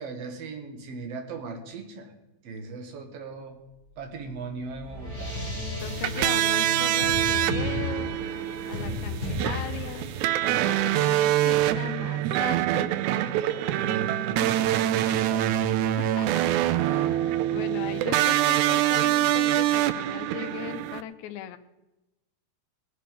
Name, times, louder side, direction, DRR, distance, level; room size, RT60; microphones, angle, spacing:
voice 1, 0.0-2.1 2.4-3.6 4.0-5.4 13.7-16.0, right 3 dB, 55° right, 5 dB, 2.2 m, -38 dB
sound 1, 4.0-14.7, left 1 dB, 15° right, 5.8 m, -36 dB
voice 2, 5.8-8.2 8.7-10.1 10.6-12.9 16.0-21.6, left 12 dB, 80° left, 9 dB, 1.7 m, -38 dB
sound 2, 5.8-21.0, right 13 dB, 85° right, 1.6 m, -25 dB
19.5 x 7.7 x 5.3 m, 1.0 s
omnidirectional pair, 4.0 m